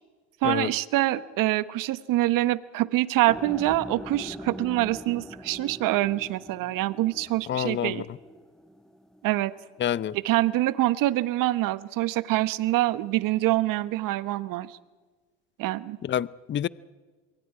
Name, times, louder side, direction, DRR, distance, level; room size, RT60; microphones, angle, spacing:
voice 1, 0.4-8.0 9.2-9.5 10.2-14.8 15.6-16.0, right 16 dB, 60° right, 1.2 m, -25 dB
sound 1, 3.3-9.4, equal, ahead, 1.8 m, -42 dB
voice 2, 7.5-8.1 9.8-10.1 16.0-16.7, left 10 dB, 30° left, 0.7 m, -28 dB
27.0 x 23.5 x 5.0 m
hypercardioid pair, 80°, 37 cm